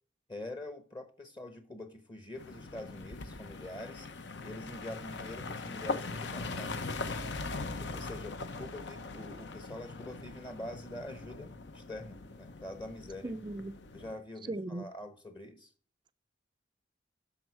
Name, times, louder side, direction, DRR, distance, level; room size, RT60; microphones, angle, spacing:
voice 1, 0.3-4.1 4.4-6.8 7.2-7.3 7.8-13.4 13.9-15.7, left 1 dB, 25° left, 1.0 m, -45 dB
sound 1, 2.4-14.2, left 3 dB, 70° left, 0.9 m, -41 dB
voice 2, 13.2-13.8 14.5-14.9, right 2 dB, 25° right, 0.4 m, -37 dB
12.5 x 5.0 x 4.5 m
head